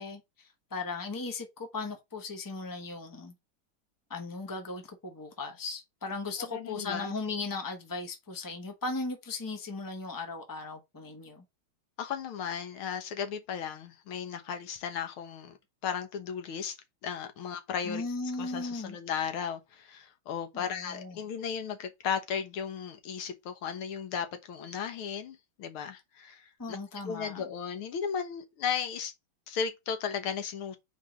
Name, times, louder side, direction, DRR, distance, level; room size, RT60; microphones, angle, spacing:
voice 1, 0.0-3.3 4.1-11.4 17.8-19.0 20.5-21.2 26.6-27.4, left 3 dB, 25° left, 0.4 m, -37 dB
voice 2, 6.4-7.2 12.0-15.6 15.8-16.8 17.0-18.1 18.4-26.8 27.1-29.1 29.5-30.8, left 7 dB, 80° left, 2.0 m, -35 dB
4.6 x 4.1 x 5.0 m
omnidirectional pair, 2.3 m